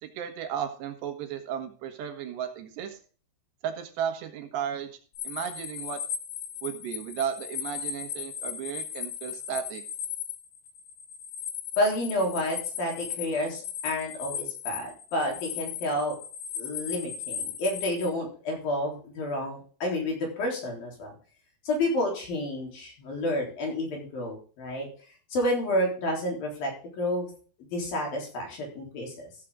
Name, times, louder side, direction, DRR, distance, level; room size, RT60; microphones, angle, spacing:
voice 1, 0.0-3.0 3.6-4.9 5.2-6.0 6.6-9.8, right 8 dB, 80° right, 6 dB, 3.6 m, -34 dB
sound 1, 5.2-18.1, left 9 dB, 80° left, 3.4 m, -37 dB
voice 2, 11.8-16.2 16.6-21.1 21.7-24.9 25.3-26.7 27.0-27.3 27.7-29.3, left 1 dB, 60° left, 0 dB, 5.3 m, -30 dB
14.5 x 7.6 x 3.7 m, 0.40 s
omnidirectional pair, 4.8 m